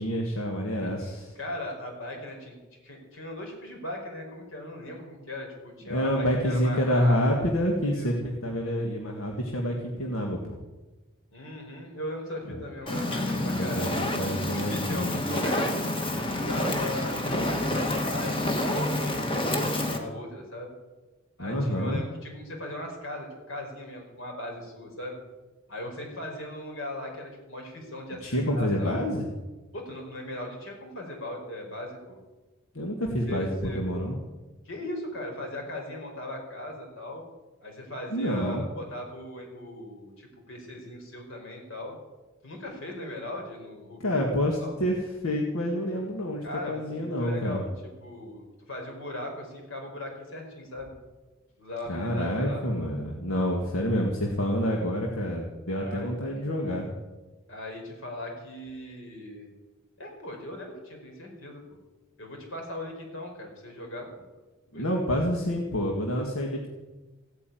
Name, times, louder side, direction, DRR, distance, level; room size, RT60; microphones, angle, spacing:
voice 1, 0.0-1.3 5.9-10.6 12.5-12.6 13.3-15.1 21.4-22.0 28.2-29.3 32.7-34.2 38.1-38.6 44.0-47.6 51.9-56.9 64.7-66.7, equal, 85° left, 1 dB, 2.0 m, -28 dB
voice 2, 1.3-2.6 2.8-7.5 7.9-8.1 11.3-14.0 14.5-20.7 21.4-25.2 25.7-28.9 29.7-32.2 33.3-33.8 34.6-37.2 37.6-41.9 42.4-44.2 44.6-44.7 46.4-47.7 48.0-50.9 51.6-52.6 55.8-56.1 57.5-59.5 60.0-61.8 62.2-64.1 64.7-64.9, left 1 dB, 65° left, 1 dB, 4.8 m, -38 dB
Fire, 12.9-20.0, left 1 dB, 25° left, 1.7 m, -28 dB
16.0 x 8.9 x 9.3 m, 1.2 s
head